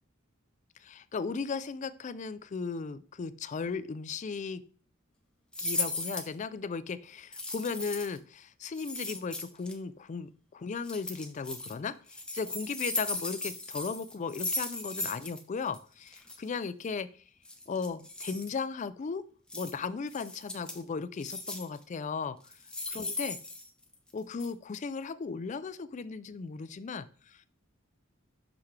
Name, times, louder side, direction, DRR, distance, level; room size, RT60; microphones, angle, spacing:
voice 1, 0.8-4.6 5.6-17.1 17.7-19.2 19.5-22.4 22.9-23.4 24.1-27.4, left 5 dB, 35° left, 14 dB, 0.4 m, -36 dB
sound 1, 5.5-6.3 7.3-8.2 8.7-9.7 10.8-11.7 12.1-15.4 15.7-15.8 16.1-16.4 17.4-18.5 19.5-19.7 20.1-20.8 21.2-21.8 22.4-24.1 24.4-24.5, left 2 dB, 5° left, 0.8 m, -37 dB
5.9 x 5.7 x 3.2 m, 0.40 s
head